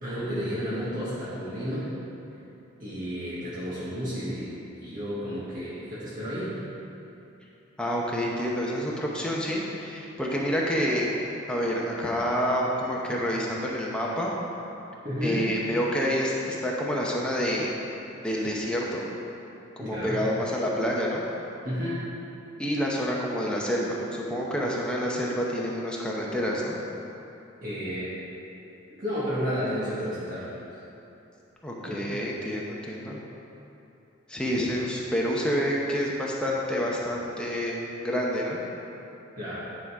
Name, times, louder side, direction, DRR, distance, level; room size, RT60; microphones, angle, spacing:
voice 1, 0.0-1.9 2.8-6.5 15.0-15.5 19.8-20.2 21.6-22.1 27.6-28.1 29.0-30.7 31.8-32.1 39.3-39.6, equal, 40° right, -10 dB, 1.3 m, -32 dB
voice 2, 7.8-11.1 11.5-14.3 15.2-17.7 18.2-19.1 19.8-21.2 22.6-26.8 31.6-33.2 34.3-38.6, equal, 5° left, -4 dB, 0.8 m, -28 dB
9.7 x 3.8 x 4.8 m, 2.9 s
head